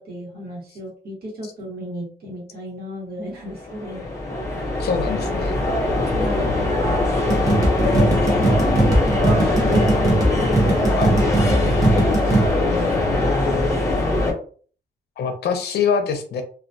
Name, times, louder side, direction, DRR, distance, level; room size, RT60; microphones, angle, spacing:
voice 1, 0.0-4.1 6.1-6.6 7.9-11.2 11.5-13.6, right 1 dB, 70° right, -3 dB, 1.0 m, -34 dB
sound 1, 3.4-14.3, left 2 dB, 15° left, 0.7 m, -21 dB
voice 2, 4.8-5.6 11.0-11.2 15.2-16.4, left 6 dB, 85° left, 6 dB, 0.5 m, -24 dB
sound 2, 7.3-12.5, right 2 dB, 20° right, 0.6 m, -20 dB
2.2 x 2.2 x 2.6 m, 0.43 s
wide cardioid pair, 180°, 16 cm